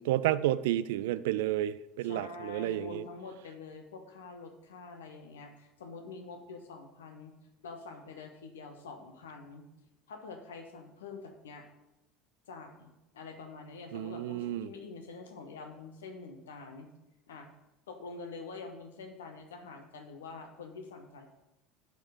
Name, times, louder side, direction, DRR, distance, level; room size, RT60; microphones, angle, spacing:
voice 1, 0.0-3.0 13.9-14.7, right 13 dB, 60° right, 17 dB, 0.3 m, -31 dB
voice 2, 2.0-7.3 7.6-9.7 10.1-11.6 12.5-16.9 17.3-17.5 17.9-21.3, left 4 dB, 70° left, 5 dB, 1.2 m, -46 dB
11.0 x 4.9 x 5.1 m, 0.94 s
figure-of-eight pair, 70°, 0 cm